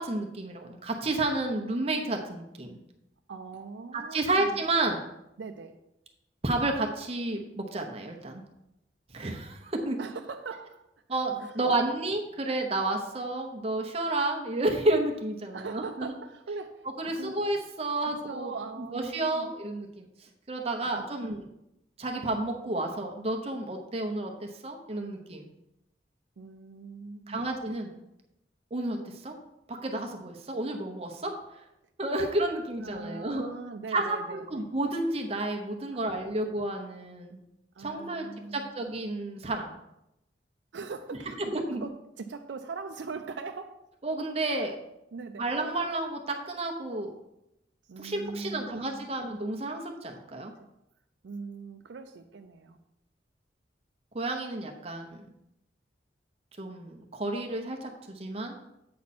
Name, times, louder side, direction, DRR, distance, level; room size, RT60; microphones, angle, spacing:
voice 1, 0.0-2.8 3.9-5.0 6.4-8.4 9.1-10.0 11.1-16.1 17.0-18.5 18.9-20.1 20.5-21.5 22.0-25.5 27.3-27.9 28.7-29.3 29.7-31.6 32.0-33.5 33.9-37.4 37.8-39.7 41.5-41.8 44.0-44.8 45.4-47.1 48.0-50.5 54.1-55.3 56.6-58.6, right 2 dB, 35° right, 2 dB, 0.8 m, -31 dB
voice 2, 3.3-4.6 5.4-5.8 10.0-10.9 11.4-11.8 15.5-17.3 18.1-19.5 20.9-21.4 26.4-27.5 32.8-34.6 35.9-36.4 37.7-38.7 40.7-43.8 45.1-45.4 47.9-49.1 50.4-50.5 51.2-52.8, right 4 dB, 90° right, 5 dB, 0.5 m, -41 dB
8.5 x 5.9 x 4.2 m, 0.87 s
head